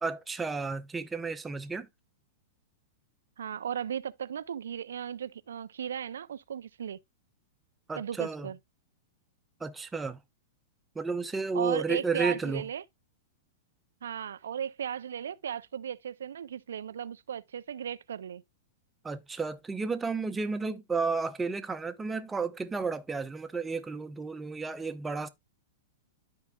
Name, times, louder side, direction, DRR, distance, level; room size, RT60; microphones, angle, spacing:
voice 1, 0.0-1.9 7.9-8.5 9.6-10.2 10.9-12.6 19.0-25.3, right 4 dB, 10° right, 0.8 m, -32 dB
voice 2, 3.4-7.0 8.0-8.6 11.5-12.8 14.0-18.4, right 8 dB, 85° right, 0.4 m, -36 dB
13.0 x 4.7 x 2.2 m
hypercardioid pair, 130°, 0 cm